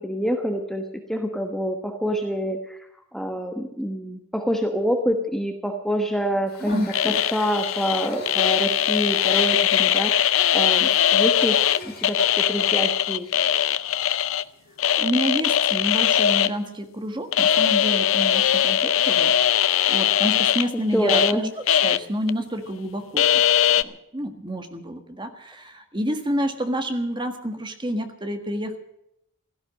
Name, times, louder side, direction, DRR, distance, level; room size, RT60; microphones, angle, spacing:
voice 1, 0.0-11.6 12.0-13.3 20.9-21.5, equal, ahead, 4 dB, 1.1 m, -26 dB
Water tap faucet, 6.5-12.3, left 4 dB, 45° left, 3.2 m, -40 dB
voice 2, 6.6-7.2 15.0-23.4 23.7-28.8, equal, 20° right, 6 dB, 1.6 m, -29 dB
sound 1, 6.9-11.8 12.0-14.4 14.8-16.5 17.3-21.3 21.7-22.0 22.3-22.4 23.2-23.8, left 10 dB, 70° left, 0.6 m, -20 dB
16.5 x 13.5 x 6.4 m, 0.79 s
head